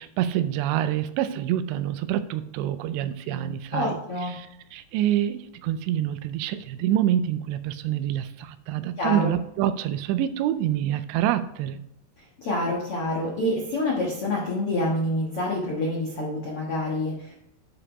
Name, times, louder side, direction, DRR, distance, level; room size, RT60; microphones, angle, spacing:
voice 1, 0.0-11.8, right 11 dB, 85° right, 12 dB, 2.7 m, -27 dB
voice 2, 3.7-4.4 9.0-9.3 12.2-17.4, left 1 dB, 70° left, -3 dB, 1.3 m, -27 dB
9.8 x 4.9 x 4.9 m, 0.75 s
omnidirectional pair, 5.1 m